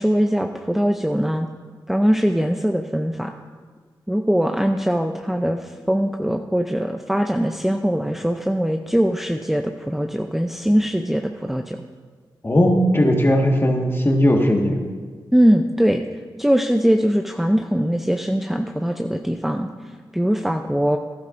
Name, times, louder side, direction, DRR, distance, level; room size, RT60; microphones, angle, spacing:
voice 1, 0.0-1.5 1.9-3.3 4.1-11.8 15.3-16.0 16.4-19.7 20.1-21.0, equal, 5° right, 4 dB, 0.6 m, -21 dB
voice 2, 12.4-14.8, equal, 25° left, 2 dB, 1.7 m, -17 dB
13.0 x 11.5 x 2.6 m, 1.5 s
cardioid pair, 45°, 9 cm